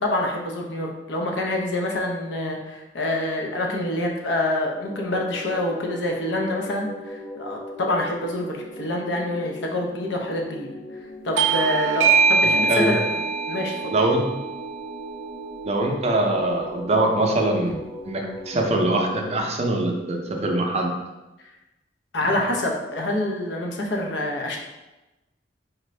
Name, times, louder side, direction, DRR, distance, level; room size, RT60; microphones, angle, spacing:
voice 1, 0.0-10.7 11.2-13.2 13.5-13.9 22.1-24.6, left 1 dB, 75° left, 0 dB, 0.7 m, -26 dB
sound 1, 4.4-19.4, left 1 dB, 15° left, 0.5 m, -39 dB
Bell / Doorbell, 11.4-16.4, right 5 dB, 90° right, 0.4 m, -24 dB
voice 2, 12.4-12.9 13.9-14.2 15.6-17.8 18.0-20.9, right 2 dB, 35° right, 2 dB, 0.5 m, -23 dB
4.3 x 2.5 x 3.2 m, 1.0 s
head